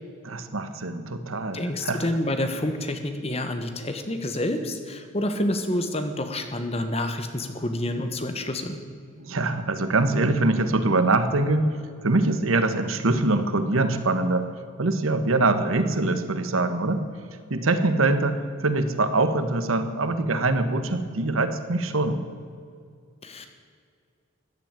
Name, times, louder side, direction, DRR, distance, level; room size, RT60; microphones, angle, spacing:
voice 1, 0.2-2.2 9.2-11.6 12.0-14.5 14.8-17.0 17.5-22.2, right 2 dB, 90° right, 10 dB, 1.3 m, -23 dB
voice 2, 1.5-8.8 23.2-23.5, left 1 dB, 30° left, 7 dB, 1.3 m, -28 dB
15.0 x 10.5 x 9.0 m, 2.2 s
head